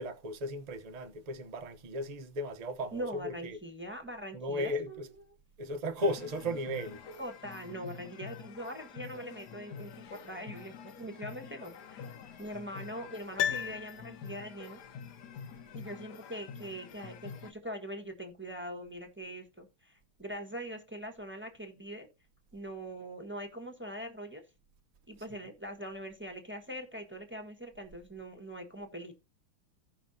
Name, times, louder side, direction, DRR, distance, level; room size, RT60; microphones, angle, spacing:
voice 1, 0.0-3.6 4.3-5.1 5.6-7.0, equal, 45° right, 0.4 m, -35 dB
voice 2, 2.9-5.0 7.2-12.0 12.4-14.8 15.7-22.1 22.5-24.4 25.1-29.1, equal, 5° right, 1.1 m, -42 dB
sound 1, 6.0-17.5, left 6 dB, 60° left, 1.3 m, -47 dB
Piano, 13.4-14.6 14.9-15.0, left 9 dB, 80° left, 0.8 m, -34 dB
16.0 x 5.8 x 2.8 m
omnidirectional pair, 2.4 m